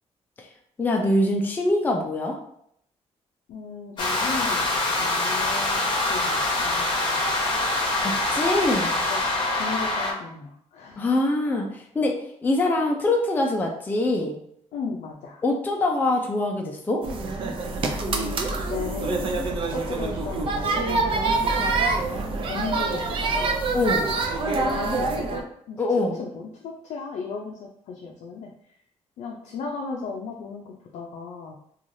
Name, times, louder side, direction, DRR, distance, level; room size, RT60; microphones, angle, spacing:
voice 1, 0.8-2.4 8.0-8.9 11.0-12.1 12.4-14.4 15.4-17.0 23.7-24.1 25.8-26.2, left 2 dB, 15° left, 1 dB, 0.4 m, -24 dB
voice 2, 3.5-4.7 5.0-7.3 9.1-9.2 9.5-11.1 14.7-15.4 18.0-19.2 19.5-22.0 22.4-23.5 24.4-25.8 26.2-28.5 29.2-31.6, left 4 dB, 85° left, -1 dB, 0.4 m, -36 dB
sound 1, 4.0-10.1, left 2 dB, 40° left, 0.8 m, -24 dB
sound 2, 17.0-25.4, right 3 dB, 50° right, 0.4 m, -26 dB
3.1 x 2.3 x 2.6 m, 0.69 s
cardioid pair, 140°, 12 cm